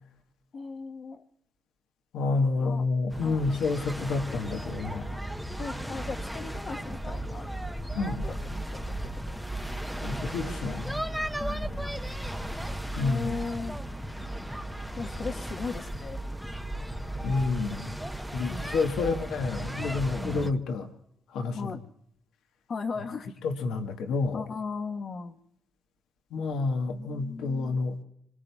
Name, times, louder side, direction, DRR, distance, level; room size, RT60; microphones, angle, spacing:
voice 1, 0.5-1.2 2.6-2.8 3.2-3.6 5.1-5.2 5.5-7.5 8.2-9.3 11.4-12.0 13.0-13.8 15.0-16.2 18.5-19.0 21.5-21.8 22.7-23.4 24.3-25.4 26.8-27.8, left 4 dB, 50° left, 6 dB, 1.2 m, -38 dB
voice 2, 2.1-5.1 7.9-8.2 10.0-11.0 13.0-13.4 17.2-18.0 18.3-20.9 21.3-21.7 23.4-24.4 26.3-28.0, left 3 dB, 80° left, 5 dB, 1.3 m, -29 dB
sound 1, 3.1-20.5, right 1 dB, 5° right, 0.9 m, -35 dB
25.5 x 22.5 x 2.3 m, 0.73 s
supercardioid pair, 60°, 0 cm